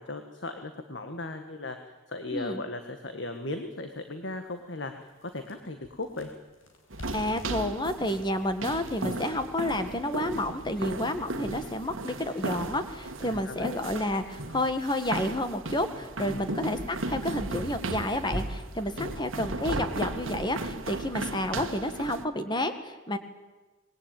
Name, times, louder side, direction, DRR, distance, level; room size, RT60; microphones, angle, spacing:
voice 1, 0.0-6.3 13.2-13.7 16.2-16.5 19.0-19.2, left 2 dB, 60° left, 7 dB, 1.7 m, -37 dB
voice 2, 2.3-2.6 7.1-23.2, left 1 dB, 20° left, 9 dB, 1.8 m, -30 dB
sound 1, 3.4-3.5 4.0-4.1 4.4-10.5, left 1 dB, 90° left, 5.3 m, -50 dB
sound 2, 6.9-22.2, right 2 dB, 80° right, 1.5 m, -36 dB
25.0 x 20.5 x 9.2 m, 1.2 s
head